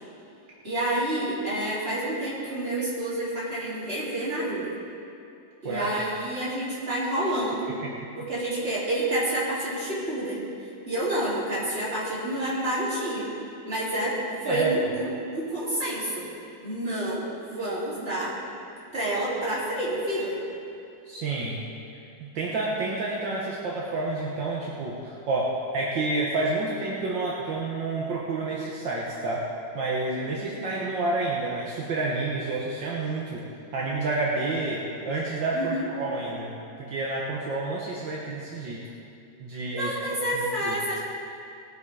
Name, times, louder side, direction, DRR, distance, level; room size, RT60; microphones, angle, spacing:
voice 1, 0.6-4.7 5.6-7.7 8.2-10.4 10.9-13.3 13.7-14.2 14.4-16.3 16.6-18.3 18.9-20.4 30.2-30.6 35.5-35.9 39.7-41.0, right 1 dB, 30° right, -9 dB, 4.0 m, -28 dB
voice 2, 21.1-21.6 22.2-29.4 29.7-33.4 33.7-38.8 39.4-40.0 40.3-40.8, right 2 dB, 70° right, -4 dB, 1.9 m, -29 dB
20.0 x 7.5 x 4.8 m, 2.7 s
omnidirectional pair, 2.1 m